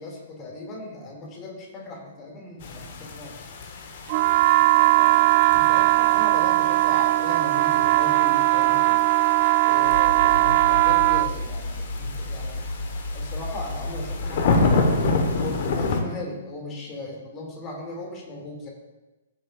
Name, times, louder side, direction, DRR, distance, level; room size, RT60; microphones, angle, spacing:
voice 1, 0.0-3.4 4.7-9.1 9.6-12.6 13.1-18.7, left 2 dB, 25° left, -1 dB, 2.5 m, -38 dB
sound 1, 2.6-16.0, left 3 dB, 45° left, 1.2 m, -30 dB
sound 2, 4.1-11.3, right 17 dB, 35° right, 0.3 m, -19 dB
sound 3, 9.8-15.5, left 2 dB, 85° left, 0.9 m, -32 dB
15.5 x 7.5 x 2.5 m, 1.1 s
figure-of-eight pair, 120°, 0 cm